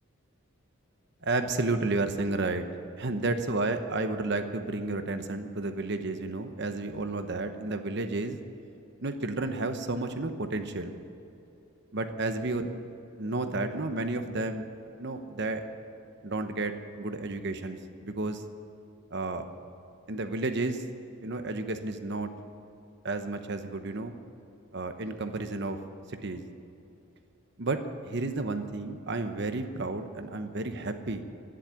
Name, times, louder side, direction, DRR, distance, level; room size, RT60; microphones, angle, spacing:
voice 1, 1.2-2.7 3.0-8.4 9.0-11.0 11.9-12.7 13.2-14.6 15.0-15.6 16.2-18.4 19.1-19.5 20.1-20.8 21.2-22.3 23.0-24.1 24.7-25.8 26.1-26.4 27.6-31.2, right 2 dB, 55° right, 7 dB, 1.0 m, -31 dB
12.5 x 10.5 x 9.9 m, 2.8 s
head